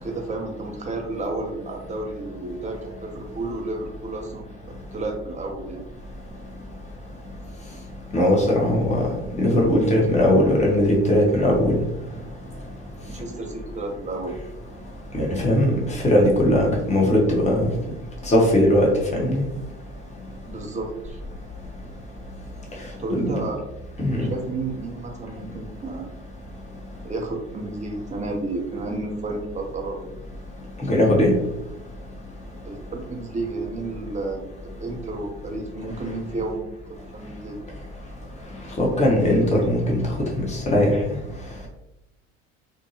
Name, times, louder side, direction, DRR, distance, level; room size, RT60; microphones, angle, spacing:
voice 1, 0.0-4.4 4.9-5.8 13.1-14.3 20.5-21.2 23.0-23.6 24.2-26.0 27.0-30.1 32.6-34.5 34.8-37.6, right 2 dB, 20° right, 1 dB, 0.6 m, -31 dB
voice 2, 8.1-9.0 9.4-11.7 15.1-15.7 16.0-17.7 18.3-19.4 23.2-23.3 24.0-24.2 30.9-31.3 38.8-40.0 40.7-40.9, left 1 dB, 20° left, -2 dB, 0.9 m, -19 dB
2.6 x 2.2 x 2.8 m, 0.92 s
hypercardioid pair, 70°, 35 cm